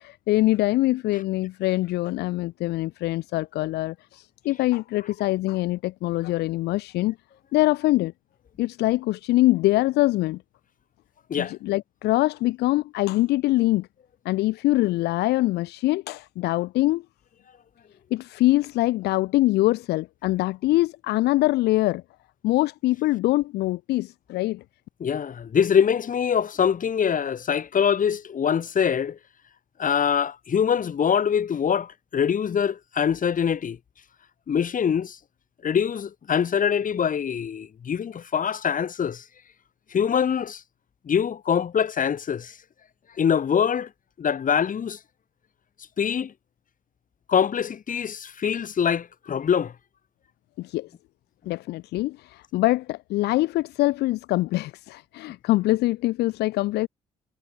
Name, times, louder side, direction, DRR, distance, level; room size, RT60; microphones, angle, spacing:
voice 1, 0.0-7.2 7.5-8.1 8.6-10.4 11.4-13.9 14.2-17.0 18.1-22.0 22.4-24.6 50.6-50.9 51.5-56.9, left 18 dB, 65° left, 2.3 m, -24 dB
voice 2, 25.0-29.2 29.8-33.8 34.5-35.2 35.6-39.2 39.9-40.6 41.1-42.6 43.2-43.9 44.2-45.0 46.0-46.3 47.3-49.7, left 7 dB, 50° left, 5.5 m, -24 dB
figure-of-eight pair, 45°, 18 cm